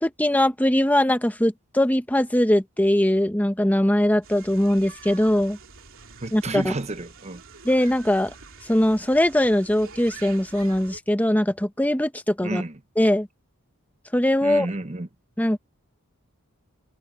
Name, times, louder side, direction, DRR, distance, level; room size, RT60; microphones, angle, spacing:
voice 1, 0.0-5.6 6.3-6.7 7.6-8.3 8.7-12.6 13.0-13.3 14.1-14.7 15.4-15.6, left 1 dB, 5° left, 1.3 m, -21 dB
sound 1, 4.2-11.0, right 5 dB, 65° right, 3.2 m, -46 dB
voice 2, 6.2-7.4 12.4-12.8 14.4-15.1, right 2 dB, 30° right, 1.0 m, -31 dB
head